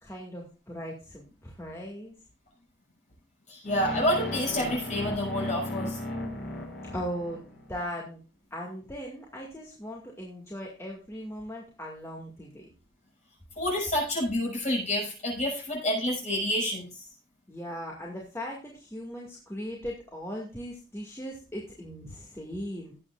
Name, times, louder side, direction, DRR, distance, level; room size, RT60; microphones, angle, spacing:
voice 1, 0.0-2.2 6.9-8.2 8.5-12.7 17.5-22.9, equal, 15° left, -2 dB, 2.1 m, -38 dB
voice 2, 3.5-6.0 13.6-16.9, equal, 40° left, -1 dB, 6.5 m, -28 dB
sound 1, 3.7-7.8, left 1 dB, 65° left, 4.2 m, -35 dB
18.5 x 8.6 x 2.5 m, 0.33 s
head